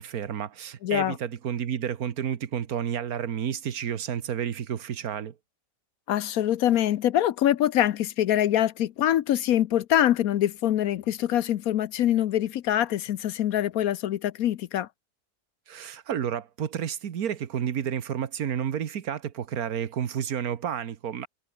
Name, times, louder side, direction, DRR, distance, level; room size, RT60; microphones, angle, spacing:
voice 1, 0.0-5.4 15.7-21.3, right 9 dB, 75° right, 1.6 m, -31 dB
voice 2, 0.8-1.2 6.1-14.9, left 11 dB, 75° left, 1.1 m, -24 dB
omnidirectional pair, 1.6 m